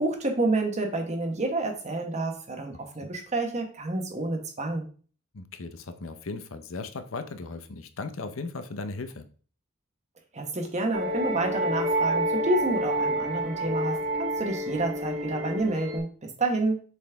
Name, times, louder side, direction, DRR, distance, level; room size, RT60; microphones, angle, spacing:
voice 1, 0.0-4.8 10.3-16.8, right 2 dB, 35° right, 4 dB, 1.2 m, -29 dB
voice 2, 5.3-9.2, left 3 dB, 70° left, 10 dB, 0.7 m, -37 dB
sound 1, 10.9-16.0, right 1 dB, 75° right, 1.8 m, -28 dB
7.1 x 4.2 x 3.4 m, 0.41 s
head